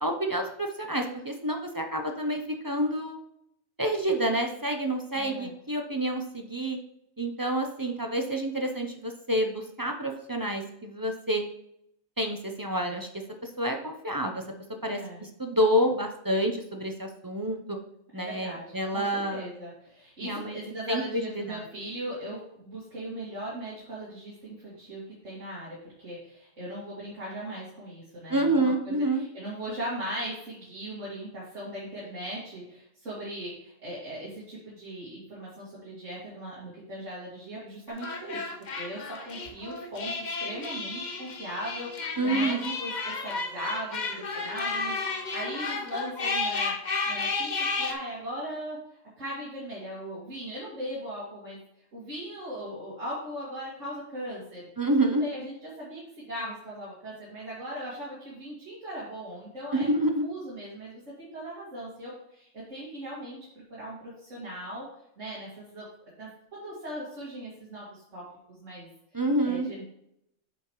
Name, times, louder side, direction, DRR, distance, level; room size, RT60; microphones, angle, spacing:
voice 1, 0.0-3.2 3.8-6.8 7.2-11.4 12.2-13.1 13.4-14.4 14.8-17.8 18.1-19.5 20.2-20.6 20.9-21.6 28.3-29.2 42.2-42.7 54.8-55.2 59.7-60.2 69.1-69.7, right 1 dB, 25° right, 3 dB, 0.5 m, -28 dB
voice 2, 5.1-5.5 14.9-15.2 18.1-38.4 38.7-46.7 47.1-48.8 49.2-51.6 51.9-54.7 55.2-59.9 60.2-63.4 63.7-64.9 65.2-65.8 66.2-68.9 69.4-69.8, right 1 dB, 65° right, -9 dB, 2.5 m, -39 dB
sound 1, 37.9-47.9, left 4 dB, 45° left, 0.7 m, -32 dB
8.1 x 5.7 x 3.1 m, 0.76 s
omnidirectional pair, 1.3 m